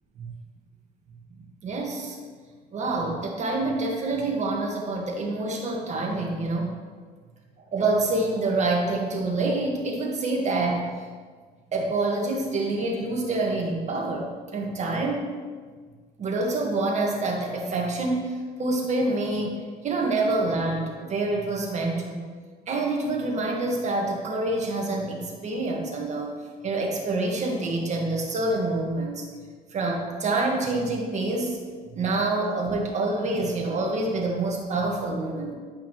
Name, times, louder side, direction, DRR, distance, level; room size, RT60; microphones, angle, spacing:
voice 1, 1.6-2.2 2.7-6.7 7.7-10.9 11.7-15.3 16.2-19.5 19.8-22.2 22.7-26.3 26.6-29.2 29.7-31.6 31.9-35.6, right 2 dB, 45° right, -1 dB, 1.6 m, -27 dB
10.5 x 5.4 x 3.1 m, 1.6 s
cardioid pair, 110°, 17 cm